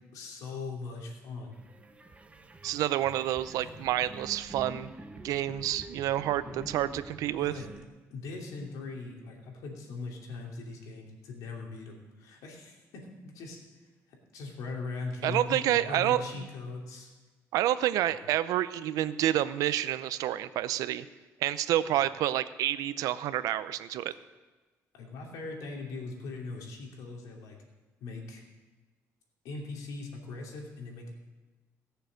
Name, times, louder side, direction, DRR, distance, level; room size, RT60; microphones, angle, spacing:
voice 1, 0.1-1.5 3.6-3.7 6.3-6.8 7.4-7.7 8.1-13.6 14.3-17.1 18.1-18.2 24.9-27.6 28.0-28.4 29.4-31.1, left 3 dB, 85° left, 0 dB, 2.9 m, -40 dB
sound 1, 1.5-7.8, right 3 dB, 20° right, 1.0 m, -47 dB
voice 2, 2.6-4.9 5.2-7.5 15.2-16.2 17.5-21.0 21.4-24.1, right 12 dB, 85° right, 14 dB, 0.6 m, -28 dB
17.5 x 6.9 x 6.4 m, 1.3 s
cardioid pair, 95°, 6 cm